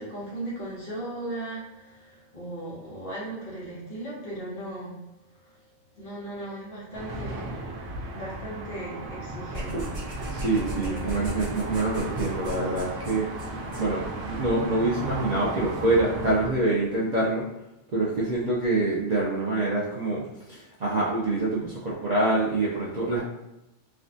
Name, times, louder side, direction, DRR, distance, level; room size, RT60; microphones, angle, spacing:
voice 1, 0.0-5.0 5.9-7.8 8.1-9.9 10.3-10.4 10.8-11.3, right 1 dB, 50° left, -9 dB, 1.2 m, -37 dB
sound 1, 6.9-16.5, right 2 dB, 80° right, 0.9 m, -35 dB
sound 2, 9.5-14.4, equal, 45° right, 0.8 m, -38 dB
voice 2, 10.3-17.5 17.9-23.3, right 2 dB, 60° right, -6 dB, 0.4 m, -26 dB
3.4 x 2.2 x 2.5 m, 0.93 s
omnidirectional pair, 1.3 m